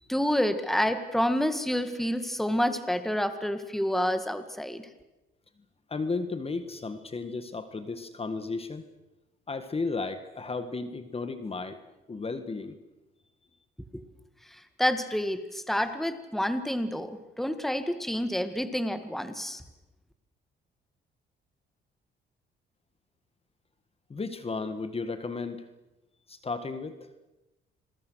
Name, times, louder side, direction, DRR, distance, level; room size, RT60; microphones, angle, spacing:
voice 1, 0.1-4.9 13.9-14.0 14.5-19.6, equal, ahead, 9 dB, 1.9 m, -28 dB
voice 2, 5.9-8.9 9.5-11.8 12.1-12.8 24.1-25.7 26.3-27.0, left 3 dB, 30° left, 10 dB, 1.7 m, -34 dB
28.0 x 21.5 x 6.4 m, 1.0 s
cardioid pair, 90°, 20 cm